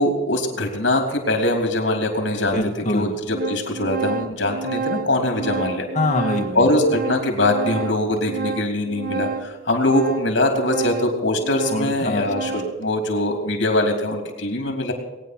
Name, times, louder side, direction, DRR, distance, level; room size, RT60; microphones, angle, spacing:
voice 1, 0.0-2.6 2.9-5.9 6.5-14.9, left 1 dB, 70° left, 3 dB, 3.1 m, -22 dB
Organ, 1.6-1.7 2.6-2.7 3.0-12.9, right 4 dB, 50° right, 0.6 m, -30 dB
voice 2, 2.5-3.1 5.9-6.7 11.7-12.7, left 2 dB, 40° left, 3 dB, 1.6 m, -24 dB
20.0 x 9.4 x 6.1 m, 1.1 s
head